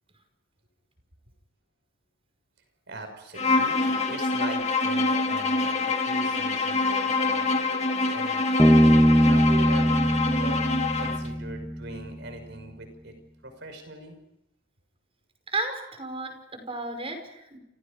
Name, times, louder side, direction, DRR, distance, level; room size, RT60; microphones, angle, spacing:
voice 1, 2.9-10.7 11.0-13.1 13.4-14.2, right 2 dB, 65° right, 7 dB, 6.0 m, -41 dB
Bowed string instrument, 3.3-11.3, left 3 dB, 35° left, 2.1 m, -26 dB
Bass guitar, 8.6-12.1, equal, 5° left, 1.7 m, -21 dB
voice 2, 15.5-17.6, right 2 dB, 30° right, 5 dB, 5.4 m, -33 dB
29.5 x 29.0 x 5.2 m, 0.86 s
head